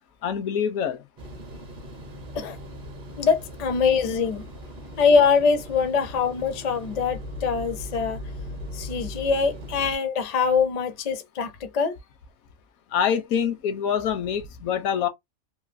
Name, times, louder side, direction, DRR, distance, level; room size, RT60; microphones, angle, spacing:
voice 1, 0.2-1.0 12.9-15.1, left 8 dB, 80° left, 1.0 m, -25 dB
sound 1, 1.2-10.0, left 1 dB, 45° right, 0.7 m, -39 dB
voice 2, 3.2-4.4 5.0-8.2 8.7-11.9, left 5 dB, 55° left, 0.4 m, -23 dB
3.1 x 2.6 x 2.5 m
omnidirectional pair, 1.5 m